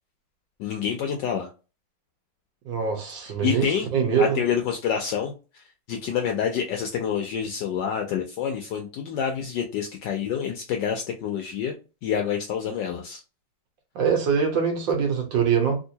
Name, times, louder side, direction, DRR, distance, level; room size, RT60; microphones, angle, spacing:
voice 1, 0.6-1.5 3.4-3.9 4.2-5.3 5.9-11.8 12.0-13.2, left 8 dB, 75° left, 1.0 m, -27 dB
voice 2, 2.7-3.7 3.9-4.4 13.9-15.8, right 6 dB, 70° right, 1.5 m, -23 dB
3.6 x 2.6 x 2.8 m
omnidirectional pair, 2.3 m